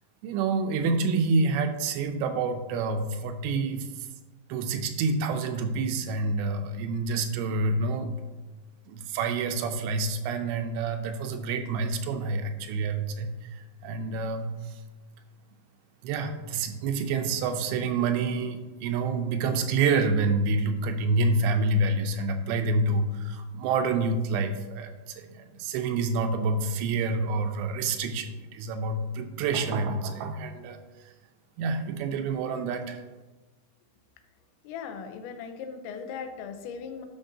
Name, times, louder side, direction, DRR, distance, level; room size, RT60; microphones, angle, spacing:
voice 1, 0.2-3.9 4.5-8.1 8.9-14.8 16.0-30.8 31.6-33.0, right 3 dB, 85° right, 6 dB, 2.8 m, -28 dB
voice 2, 34.6-37.1, left 6 dB, 90° left, 6 dB, 3.1 m, -38 dB
10.0 x 6.0 x 2.7 m, 1.2 s
omnidirectional pair, 5.1 m